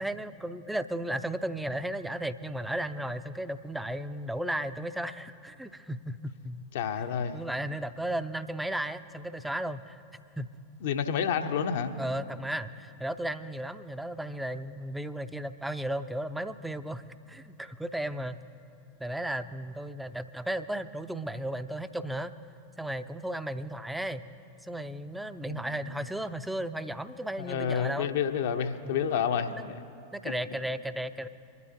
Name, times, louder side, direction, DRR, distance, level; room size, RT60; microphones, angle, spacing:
voice 1, 0.0-6.7 7.3-10.0 10.4-10.5 12.0-18.4 19.0-22.3 22.8-24.3 24.6-28.1 28.8-29.0 29.5-29.7 30.1-31.3, right 1 dB, 5° right, 11 dB, 0.6 m, -35 dB
voice 2, 6.7-7.4 10.8-11.9 25.5-25.7 27.4-29.5, left 7 dB, 55° left, 7 dB, 0.9 m, -29 dB
25.0 x 12.5 x 2.9 m, 2.7 s
figure-of-eight pair, 90°, 0 cm